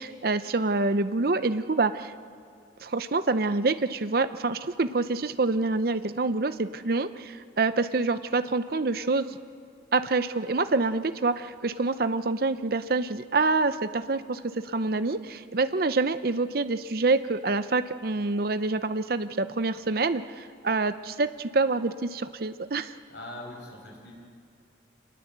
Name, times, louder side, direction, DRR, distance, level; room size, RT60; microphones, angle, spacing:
voice 1, 0.0-2.1 2.8-9.4 9.9-22.9, right 3 dB, 55° right, 11 dB, 0.7 m, -26 dB
voice 2, 23.1-24.1, left 1 dB, 70° left, -1 dB, 6.4 m, -41 dB
26.5 x 20.5 x 8.1 m, 2.3 s
head